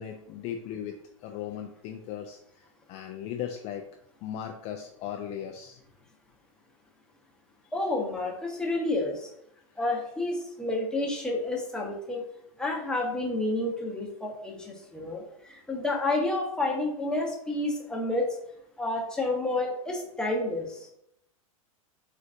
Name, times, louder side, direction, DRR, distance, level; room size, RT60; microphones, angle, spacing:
voice 1, 0.0-3.9 4.2-5.8, left 9 dB, 35° left, 3 dB, 0.4 m, -37 dB
voice 2, 7.7-9.3 9.8-12.2 12.6-18.4 18.8-20.9, left 2 dB, 5° left, -1 dB, 0.9 m, -30 dB
3.7 x 3.2 x 2.6 m, 0.76 s
hypercardioid pair, 105°, 18 cm